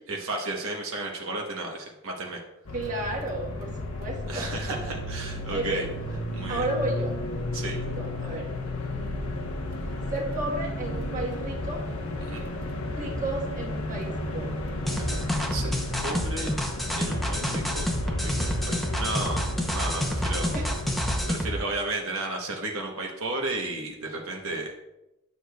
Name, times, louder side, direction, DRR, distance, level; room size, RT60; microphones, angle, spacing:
voice 1, 0.1-2.4 4.3-5.8 6.3-6.6 7.5-7.8 12.2-12.4 15.0-15.7 16.0-16.5 16.9-19.4 19.7-20.5 21.3-24.7, right 2 dB, 75° right, 0 dB, 1.0 m, -33 dB
sound 1, 2.7-21.3, left 1 dB, 85° left, 1.1 m, -33 dB
voice 2, 2.7-3.7 4.0-4.8 5.5-5.9 6.5-7.2 7.6-8.5 8.8-9.4 10.1-11.8 12.9-14.7 20.5-20.7 20.9-21.0 21.4-21.6, right 2 dB, 35° right, -3 dB, 1.3 m, -33 dB
sound 2, 14.9-21.6, equal, ahead, 0.6 m, -29 dB
9.8 x 6.4 x 2.3 m, 0.92 s
head